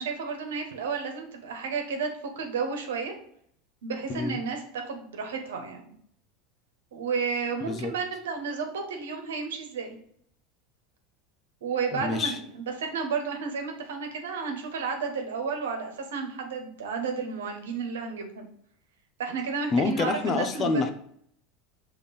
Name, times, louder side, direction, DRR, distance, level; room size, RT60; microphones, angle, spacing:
voice 1, 0.0-2.1 2.3-3.1 3.8-5.8 6.9-10.0 11.6-18.5 19.2-20.8, right 5 dB, 80° right, 4 dB, 1.2 m, -32 dB
voice 2, 11.9-12.4 19.7-20.9, left 4 dB, 40° left, 7 dB, 0.8 m, -27 dB
5.4 x 3.5 x 5.4 m, 0.67 s
hypercardioid pair, 90°, 0 cm